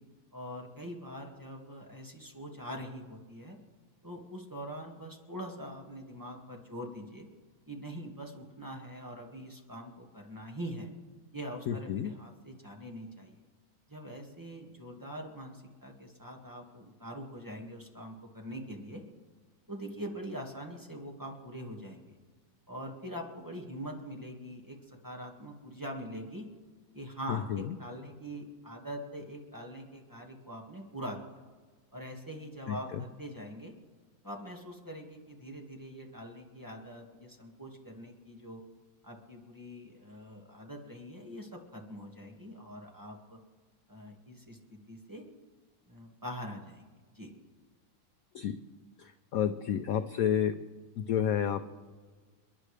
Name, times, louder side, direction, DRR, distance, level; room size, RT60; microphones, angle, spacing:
voice 1, 0.3-3.6 4.0-7.3 7.7-10.9 11.3-13.4 13.9-19.0 19.7-22.2 22.7-26.5 26.9-31.4 31.9-33.7 34.2-38.6 39.0-43.4 43.9-44.6 44.9-45.3 45.9-46.9 47.1-47.3, equal, 10° right, 0 dB, 1.7 m, -43 dB
voice 2, 11.7-12.1 27.3-27.8 32.7-33.0 48.3-48.6 49.0-50.5 51.0-51.7, left 9 dB, 75° left, 9 dB, 0.8 m, -31 dB
29.5 x 10.5 x 3.3 m, 1.4 s
omnidirectional pair, 2.1 m